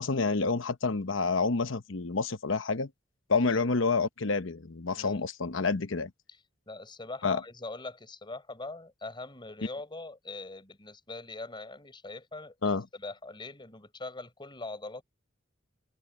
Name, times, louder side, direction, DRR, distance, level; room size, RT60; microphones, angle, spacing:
voice 1, 0.0-2.9 3.3-6.1 7.2-7.4 12.6-12.8, left 4 dB, 70° left, 1.0 m, -28 dB
voice 2, 6.7-15.0, left 2 dB, 25° left, 4.7 m, -42 dB
head